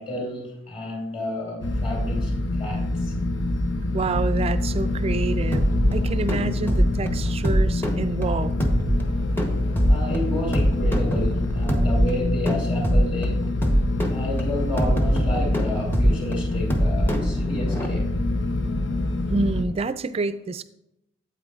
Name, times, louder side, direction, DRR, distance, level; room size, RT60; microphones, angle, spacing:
voice 1, 0.0-3.1 9.9-13.4 14.1-18.0, left 1 dB, 30° left, -1 dB, 2.4 m, -31 dB
sound 1, 1.6-19.6, left 2 dB, 70° left, 0.7 m, -26 dB
voice 2, 3.9-8.5 19.3-20.6, right 3 dB, 30° right, 13 dB, 0.3 m, -28 dB
sound 2, 5.5-17.9, equal, 10° left, 0.8 m, -24 dB
8.9 x 8.0 x 2.4 m, 0.82 s
head